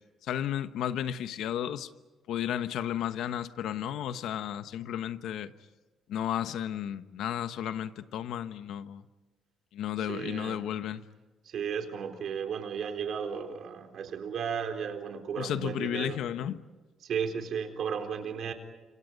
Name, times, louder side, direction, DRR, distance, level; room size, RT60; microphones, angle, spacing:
voice 1, 0.2-1.9 2.3-5.5 6.1-9.0 9.7-11.0 15.4-16.6, left 10 dB, 80° left, 12 dB, 1.1 m, -33 dB
voice 2, 10.0-10.6 11.4-16.2 17.0-18.5, right 7 dB, 65° right, 5 dB, 4.0 m, -34 dB
30.0 x 27.0 x 5.3 m, 1.2 s
cardioid pair, 90°, 0 cm